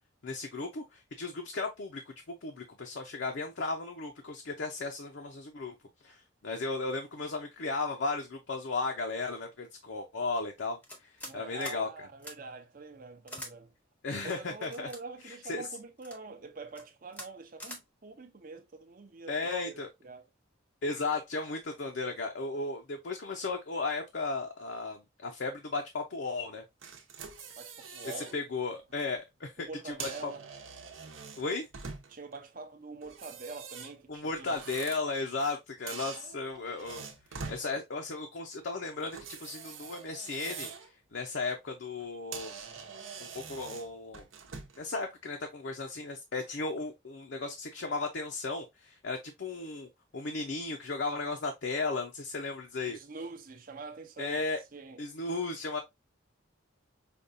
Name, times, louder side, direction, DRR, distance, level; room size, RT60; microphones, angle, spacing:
voice 1, 0.2-2.0 2.3-5.7 6.0-11.9 14.0-14.9 15.2-15.6 19.3-19.9 20.8-26.6 28.0-30.3 31.4-31.7 34.1-37.1 37.5-40.7 41.1-42.6 43.2-44.2 44.8-53.0 54.2-54.6 55.0-55.8, left 3 dB, 65° left, 0.6 m, -35 dB
sound 1, 10.8-11.4 11.6-11.8 12.2-12.3 13.3-13.5 14.3-15.0 15.7-16.2 16.7-16.8 17.1-17.3 17.6-17.8, left 1 dB, 5° left, 0.6 m, -44 dB
voice 2, 11.2-13.7 14.2-20.3 27.6-28.4 29.6-30.5 32.1-34.6 37.6-37.7 52.9-54.4 54.7-55.0, right 3 dB, 45° right, 0.6 m, -45 dB
sound 2, 26.8-28.4 28.8-29.0 29.8-32.3 33.0-35.6 35.9-37.6 39.1-40.9 41.3-41.5 42.0-42.1 42.3-44.9, right 5 dB, 80° right, 0.8 m, -44 dB
5.1 x 2.3 x 2.6 m
head